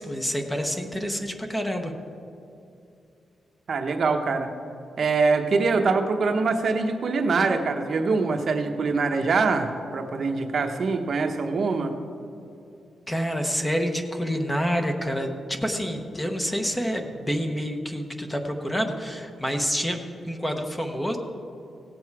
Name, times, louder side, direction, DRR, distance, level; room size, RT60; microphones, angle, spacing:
voice 1, 0.0-1.9 13.1-15.3 15.6-20.0 20.2-21.2, equal, 10° left, 4 dB, 0.8 m, -28 dB
voice 2, 3.7-4.5 5.0-11.9, right 4 dB, 50° right, 5 dB, 0.8 m, -24 dB
17.0 x 7.7 x 4.7 m, 2.6 s
wide cardioid pair, 140°, 0 cm